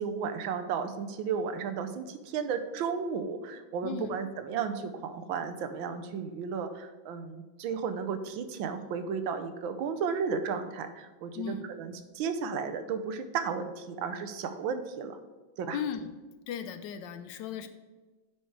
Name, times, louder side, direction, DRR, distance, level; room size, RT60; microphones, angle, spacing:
voice 1, 0.0-15.2 15.6-15.8, right 6 dB, 85° right, 9 dB, 1.5 m, -34 dB
voice 2, 15.7-16.1 16.5-17.7, left 7 dB, 75° left, 10 dB, 1.2 m, -36 dB
9.1 x 4.4 x 4.7 m, 1.2 s
omnidirectional pair, 2.1 m